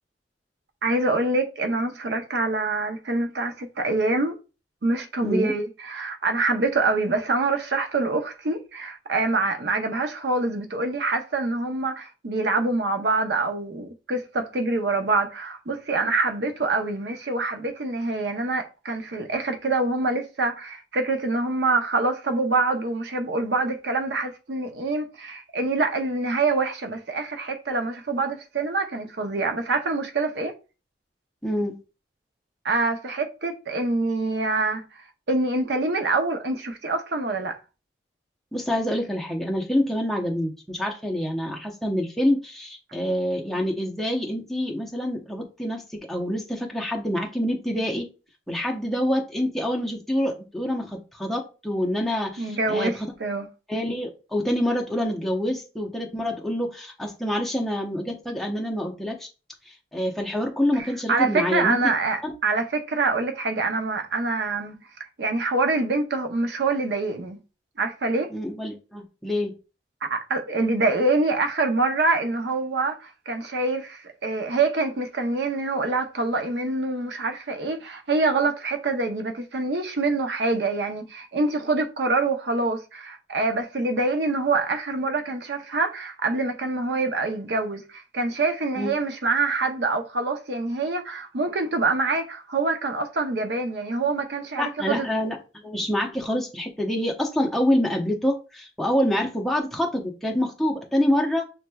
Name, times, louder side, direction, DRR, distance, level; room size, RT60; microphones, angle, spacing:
voice 1, 0.8-4.4 4.8-30.5 32.6-37.6 52.4-53.5 60.8-64.8 65.2-67.4 67.8-68.3 70.1-95.1, right 3 dB, 70° right, 0.6 m, -25 dB
voice 2, 5.2-5.5 31.4-31.8 38.5-48.1 48.5-52.9 53.7-59.3 59.7-61.9 62.2-62.3 68.3-69.5 88.8-88.9 94.6-101.5, left 1 dB, ahead, 0.7 m, -26 dB
6.6 x 3.0 x 2.3 m
head